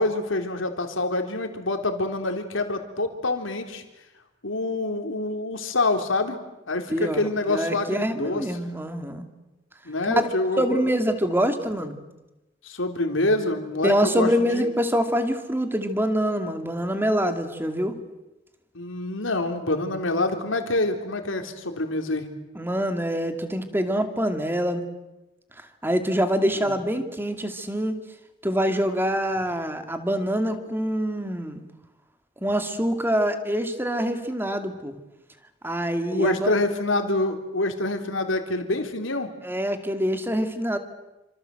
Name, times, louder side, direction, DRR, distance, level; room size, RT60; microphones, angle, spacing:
voice 1, 0.0-3.8 4.4-6.4 6.7-8.5 9.9-10.8 12.6-14.7 18.7-22.3 26.6-26.8 36.1-39.3, left 2 dB, 75° left, 5 dB, 3.7 m, -26 dB
voice 2, 6.9-9.3 10.1-10.3 10.6-12.0 13.8-18.0 22.5-24.8 25.8-28.0 28.4-31.6 32.4-35.0 35.6-36.5 39.4-40.8, equal, 10° right, 7 dB, 2.4 m, -25 dB
28.5 x 26.0 x 7.8 m, 1.0 s
head